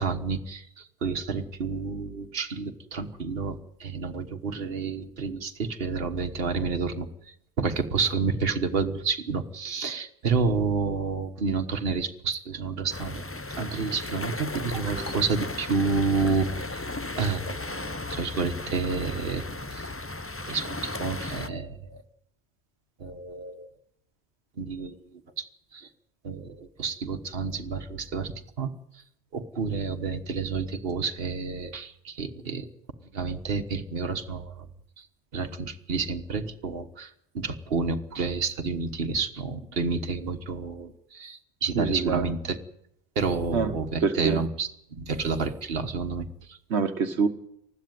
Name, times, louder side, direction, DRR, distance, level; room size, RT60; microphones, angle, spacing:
voice 1, 0.0-7.1 7.6-13.2 13.6-16.9 17.1-19.4 19.7-19.9 20.5-22.0 23.0-23.7 24.6-25.0 25.4-25.9 26.2-29.0 29.3-32.7 33.1-34.7 35.0-35.1 35.3-42.6 43.1-46.6, right 4 dB, 60° right, 6 dB, 1.6 m, -30 dB
sound 1, 12.9-21.5, left 2 dB, 15° left, 0.6 m, -35 dB
voice 2, 41.7-42.2 43.5-43.7 44.0-44.4 46.7-47.3, right 5 dB, 80° right, 6 dB, 1.5 m, -25 dB
20.0 x 14.5 x 9.3 m, 0.74 s
omnidirectional pair, 1.1 m